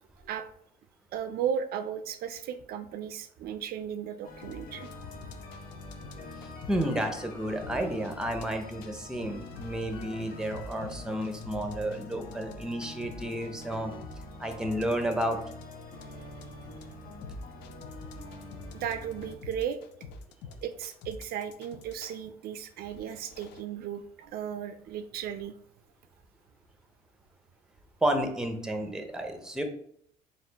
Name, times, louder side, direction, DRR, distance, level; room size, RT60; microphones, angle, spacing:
voice 1, 1.1-4.9 18.7-19.8 20.6-25.5, right 8 dB, 65° right, 10 dB, 0.4 m, -35 dB
sound 1, 4.2-19.3, left 2 dB, 60° left, 0.9 m, -45 dB
sound 2, 4.4-7.1 7.6-8.9 9.2-22.2 22.8-23.6, left 3 dB, 85° left, 0.5 m, -46 dB
voice 2, 6.4-13.9 14.4-15.4 28.0-29.6, right 1 dB, 5° right, 6 dB, 0.6 m, -31 dB
4.2 x 2.4 x 3.9 m, 0.66 s
cardioid pair, 110°, 17 cm